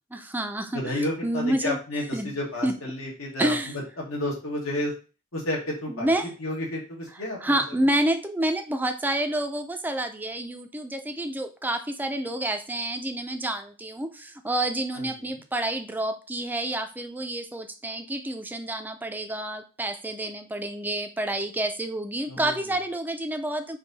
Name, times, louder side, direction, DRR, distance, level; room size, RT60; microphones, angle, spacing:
voice 1, 0.1-1.8 2.1-2.4 2.6-2.7 3.4-3.7 5.9-6.4 7.1-23.8, right 1 dB, 10° right, 7 dB, 0.4 m, -29 dB
voice 2, 0.7-3.5 4.1-4.9 5.3-6.1 6.4-7.6 14.9-15.1 22.3-22.6, left 1 dB, 80° left, -2 dB, 1.8 m, -31 dB
4.6 x 2.9 x 4.0 m, 0.34 s
head